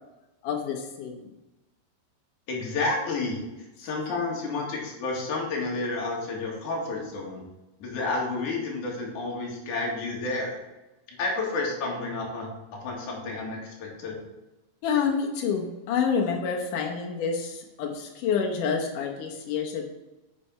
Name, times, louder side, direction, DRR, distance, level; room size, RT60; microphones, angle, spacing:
voice 1, 0.4-1.2 14.8-19.8, left 6 dB, 70° left, 1 dB, 2.0 m, -28 dB
voice 2, 2.5-3.4 3.8-7.5 7.8-10.6 11.2-12.5 12.8-14.2, left 3 dB, 55° left, -2 dB, 2.9 m, -30 dB
8.5 x 6.1 x 5.5 m, 1.0 s
omnidirectional pair, 5.0 m